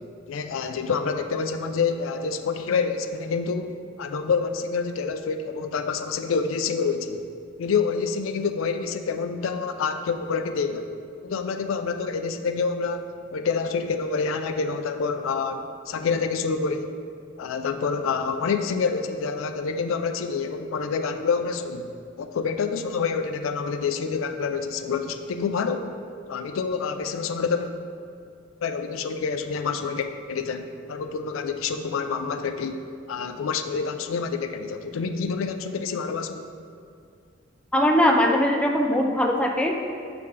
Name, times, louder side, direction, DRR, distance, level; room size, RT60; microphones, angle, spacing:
voice 1, 0.3-3.7 4.0-7.2 7.6-10.9 11.2-13.0 13.3-16.9 17.4-21.9 22.2-25.9 26.3-27.8 28.6-32.8 33.1-36.4, left 5 dB, 90° left, 7 dB, 0.4 m, -27 dB
voice 2, 37.7-39.8, left 1 dB, 5° left, 2 dB, 0.4 m, -20 dB
6.8 x 5.1 x 3.3 m, 2.4 s
head